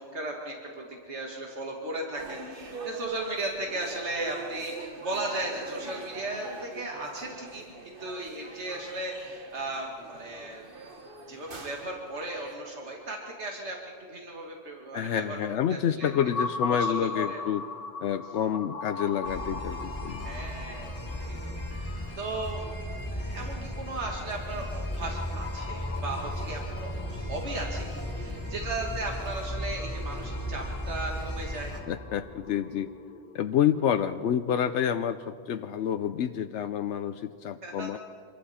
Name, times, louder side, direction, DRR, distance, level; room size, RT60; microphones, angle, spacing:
voice 1, 0.0-7.7 8.0-10.6 11.3-15.4 15.7-16.1 16.7-17.4 20.2-22.7 23.1-31.8 37.6-38.0, right 2 dB, 80° right, -1 dB, 2.4 m, -36 dB
sound 1, 2.2-12.5, right 3 dB, 50° right, 1.6 m, -43 dB
voice 2, 14.9-17.6 18.0-20.3 31.9-32.9 33.3-38.0, left 9 dB, 85° left, 9 dB, 1.0 m, -28 dB
sound 2, 16.0-35.0, left 4 dB, 55° left, 1.0 m, -40 dB
sound 3, 19.2-31.8, equal, 10° left, 3.1 m, -35 dB
27.0 x 22.5 x 4.3 m, 2.1 s
omnidirectional pair, 1.2 m